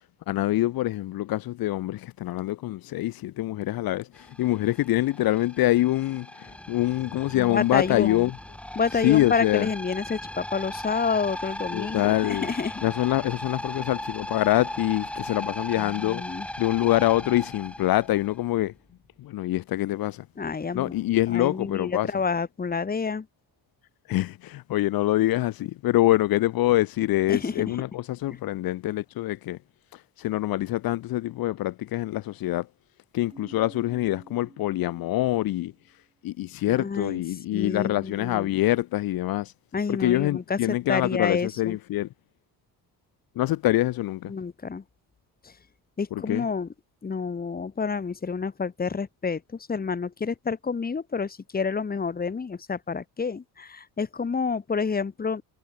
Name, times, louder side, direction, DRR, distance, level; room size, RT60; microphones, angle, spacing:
voice 1, 0.3-8.3 9.0-9.7 11.7-12.5 12.8-16.2 16.6-18.7 19.2-20.2 20.7-22.1 24.1-29.6 29.9-32.7 33.1-35.7 36.2-39.5 39.9-42.1 43.3-44.3 46.1-46.4, left 15 dB, 70° left, 1.3 m, -25 dB
sound 1, 4.1-18.7, left 1 dB, 5° left, 1.1 m, -37 dB
voice 2, 7.3-8.3 8.7-12.8 15.8-16.5 20.4-21.0 21.3-23.3 27.3-27.8 36.7-37.2 37.5-38.5 39.7-41.8 44.3-44.8 45.4-45.5 46.0-46.7 47.0-55.4, left 5 dB, 25° left, 2.8 m, -29 dB
Keyboard (musical), 33.3-35.9, right 3 dB, 15° right, 6.8 m, -51 dB
cardioid pair, 130°, 37 cm